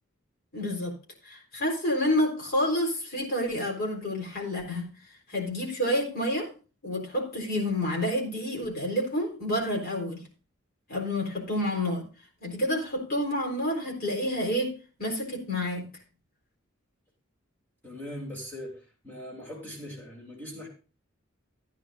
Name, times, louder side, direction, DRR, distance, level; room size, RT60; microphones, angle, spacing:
voice 1, 0.5-0.9 1.2-4.9 5.3-6.5 6.8-10.2 10.9-12.1 12.4-15.9, left 1 dB, 50° left, 0 dB, 4.1 m, -29 dB
voice 2, 17.8-20.7, equal, 10° left, -4 dB, 3.1 m, -40 dB
14.5 x 9.8 x 2.6 m, 0.34 s
head